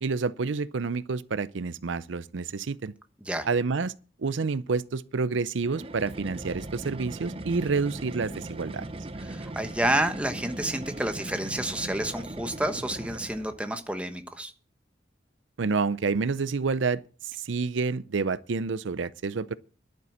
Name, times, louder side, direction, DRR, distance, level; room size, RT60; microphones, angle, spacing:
voice 1, 0.0-2.9 3.4-3.9 4.2-8.9 15.6-19.6, right 4 dB, 75° right, 0.6 m, -28 dB
sound 1, 5.6-13.6, right 1 dB, 30° right, 0.9 m, -39 dB
voice 2, 9.2-14.5, right 1 dB, 5° right, 1.1 m, -29 dB
11.0 x 9.2 x 7.3 m
head